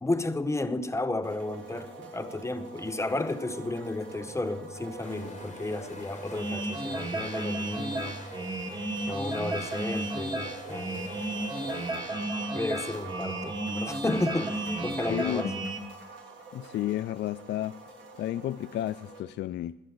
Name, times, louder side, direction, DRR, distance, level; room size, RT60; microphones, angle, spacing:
voice 1, 0.0-8.2 9.1-11.0 12.5-15.5, left 2 dB, 15° left, 1.0 m, -32 dB
sound 1, 1.2-19.2, right 3 dB, 70° right, 2.8 m, -45 dB
sound 2, 5.0-11.9, left 4 dB, 35° left, 1.6 m, -49 dB
sound 3, 6.3-15.8, right 1 dB, 20° right, 1.7 m, -33 dB
voice 2, 15.1-15.5 16.5-17.8 18.2-19.8, left 13 dB, 60° left, 0.4 m, -32 dB
20.5 x 10.0 x 4.0 m
cardioid pair, 90°, 20 cm